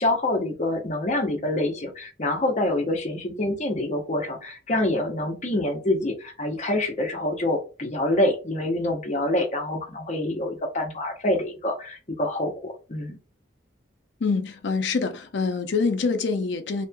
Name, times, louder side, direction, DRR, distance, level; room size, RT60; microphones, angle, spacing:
voice 1, 0.0-13.2, left 1 dB, 35° left, 0.7 m, -26 dB
voice 2, 14.2-16.9, left 4 dB, 65° left, 0.5 m, -25 dB
3.0 x 2.8 x 2.2 m
head